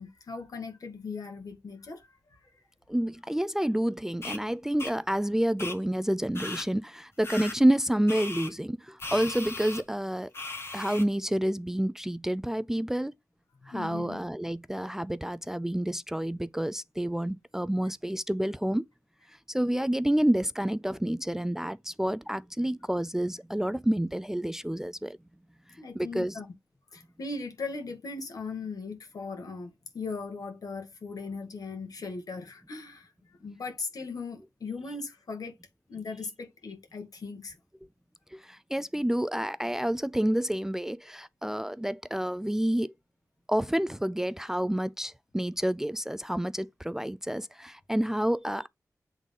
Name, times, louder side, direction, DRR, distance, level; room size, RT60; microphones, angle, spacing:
voice 1, 0.0-2.4 13.6-14.2 25.8-26.5 26.9-35.6 35.9-37.6, left 4 dB, 80° left, 2.0 m, -39 dB
voice 2, 2.9-10.3 10.7-13.1 13.7-18.9 19.5-25.2 26.0-26.3 38.3-42.9 43.5-48.7, right 1 dB, 5° right, 0.3 m, -29 dB
sound 1, 4.2-4.4 4.8-4.9 5.6-5.8 6.3-6.7 7.2-7.6 8.1-8.5 9.0-9.8 10.3-11.0, left 3 dB, 40° left, 1.4 m, -37 dB
8.1 x 3.8 x 3.7 m
wide cardioid pair, 120°, 6 cm